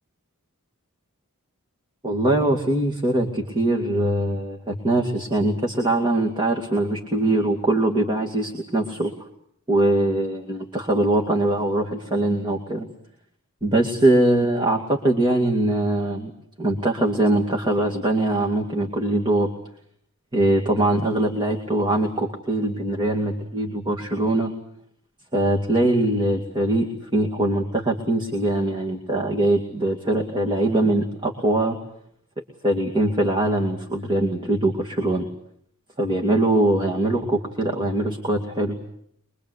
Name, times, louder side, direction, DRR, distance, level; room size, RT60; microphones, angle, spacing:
voice 1, 2.0-9.3 9.7-12.9 13.6-16.3 16.6-19.5 20.3-24.5 25.3-31.8 32.6-35.3 36.0-38.8, right 1 dB, 20° right, 0 dB, 2.4 m, -22 dB
25.0 x 23.0 x 8.3 m, 0.70 s
head